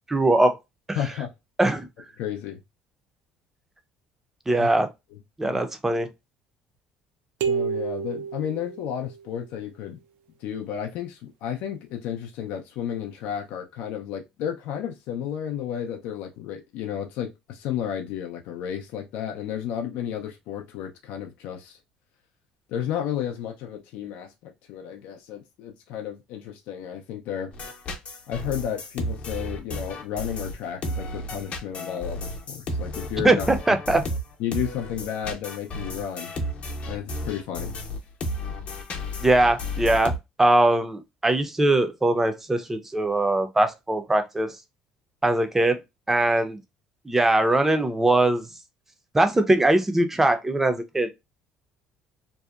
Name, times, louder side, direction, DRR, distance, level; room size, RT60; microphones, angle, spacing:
voice 1, 0.1-0.5 0.9-1.0 1.6-1.9 4.5-4.9 5.4-6.1 33.2-34.0 39.2-40.1 40.4-44.5 45.2-45.8 46.1-46.6 47.1-48.5 49.1-51.1, right 2 dB, 10° right, 0.5 m, -21 dB
voice 2, 0.9-1.3 2.2-2.6 4.6-4.7 5.4-5.6 7.5-10.0 10.4-21.8 22.7-27.5 28.3-33.5 34.4-36.3 36.9-37.8, left 9 dB, 75° left, 0.4 m, -32 dB
sound 1, 7.4-9.3, right 7 dB, 75° right, 0.4 m, -29 dB
sound 2, 27.5-40.2, left 1 dB, 50° left, 0.7 m, -33 dB
2.6 x 2.1 x 2.3 m
cardioid pair, 100°, 3 cm